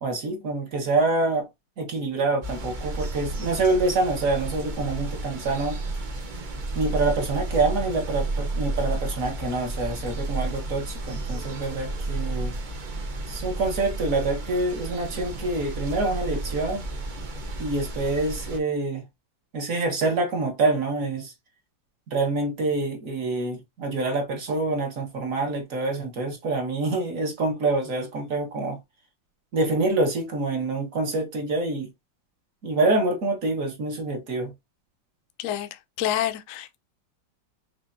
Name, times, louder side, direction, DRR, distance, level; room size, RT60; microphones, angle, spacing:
voice 1, 0.0-1.5 1.8-5.8 6.7-12.5 13.3-16.9 17.6-19.0 19.5-21.3 22.1-28.8 29.5-31.9 32.6-34.5, right 2 dB, 50° right, 1.5 m, -26 dB
sound 1, 2.4-18.6, right 2 dB, 75° right, 0.4 m, -32 dB
voice 2, 35.4-36.8, left 11 dB, 75° left, 0.7 m, -28 dB
5.8 x 3.0 x 2.6 m
omnidirectional pair, 2.1 m